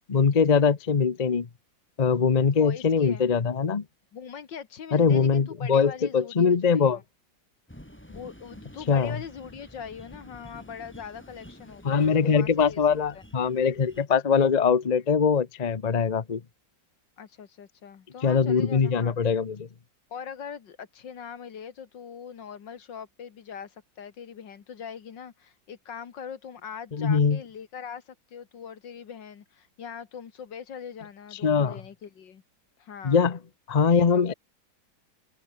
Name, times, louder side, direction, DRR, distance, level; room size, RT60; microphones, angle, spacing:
voice 1, 0.1-1.5 2.0-3.8 4.9-7.0 8.9-9.2 11.8-16.4 18.2-19.7 26.9-27.4 31.4-31.8 33.0-33.4 33.7-34.3, left 6 dB, 35° left, 0.7 m, -22 dB
voice 2, 2.6-3.3 4.1-7.0 8.1-12.8 13.1-13.2 17.2-19.4 20.1-32.4 32.8-33.3 33.9-34.3, left 7 dB, 70° left, 2.4 m, -42 dB
sound 1, 7.7-14.1, equal, 5° left, 7.3 m, -49 dB
omnidirectional pair, 2.0 m